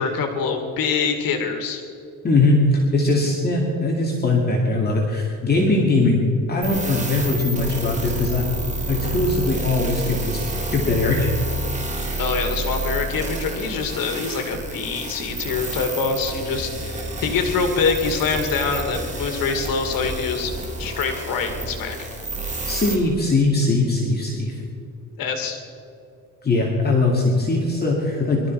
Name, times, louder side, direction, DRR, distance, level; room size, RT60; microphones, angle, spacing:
voice 1, 0.0-1.8 12.2-20.5 20.8-22.1 25.2-25.6, left 5 dB, 85° left, 5 dB, 2.3 m, -25 dB
voice 2, 2.2-6.2 6.5-8.4 8.9-11.3 22.6-24.6 26.4-28.4, left 2 dB, 30° left, -2 dB, 2.4 m, -20 dB
sound 1, 6.6-22.9, right 2 dB, 20° right, 2.8 m, -29 dB
23.0 x 13.0 x 4.7 m, 2.7 s
cardioid pair, 140°, 34 cm